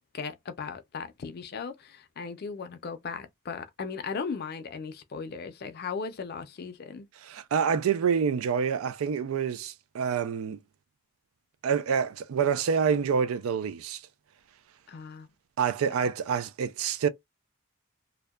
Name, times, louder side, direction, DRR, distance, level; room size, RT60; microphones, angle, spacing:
voice 1, 0.1-7.1 14.9-15.3, left 5 dB, 50° left, 0.4 m, -37 dB
voice 2, 7.2-10.6 11.6-14.0 15.6-17.1, right 6 dB, 80° right, 0.3 m, -27 dB
2.7 x 2.1 x 2.2 m
head